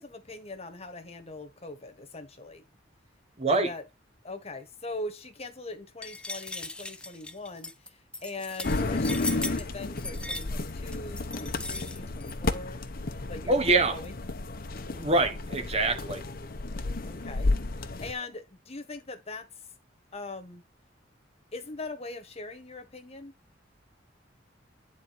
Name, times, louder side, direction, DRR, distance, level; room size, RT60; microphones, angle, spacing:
voice 1, 0.0-2.6 3.5-3.8 4.2-12.8 13.3-14.2 17.0-17.5 18.0-19.5 20.1-20.6 21.5-23.3, left 2 dB, 35° left, 1.4 m, -41 dB
voice 2, 3.4-3.7 13.5-14.0 14.9-16.2, right 2 dB, 35° right, 1.2 m, -25 dB
sound 1, 6.0-12.3, left 2 dB, 5° left, 0.6 m, -38 dB
sound 2, 8.6-18.1, left 2 dB, 50° left, 0.8 m, -32 dB
9.3 x 4.2 x 4.2 m
head